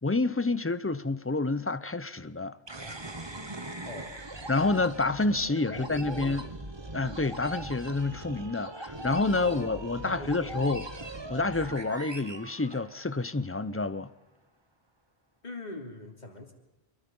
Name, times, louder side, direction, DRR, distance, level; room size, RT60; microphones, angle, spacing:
voice 1, 0.0-2.5 4.5-6.4 6.9-10.9 11.3-14.1, left 3 dB, 15° left, 0.6 m, -28 dB
sound 1, 2.7-13.3, right 2 dB, 25° right, 1.4 m, -41 dB
voice 2, 3.8-4.1 5.4-6.4 9.4-10.6 15.4-16.5, left 2 dB, 40° left, 3.3 m, -42 dB
26.0 x 22.5 x 5.5 m
omnidirectional pair, 1.1 m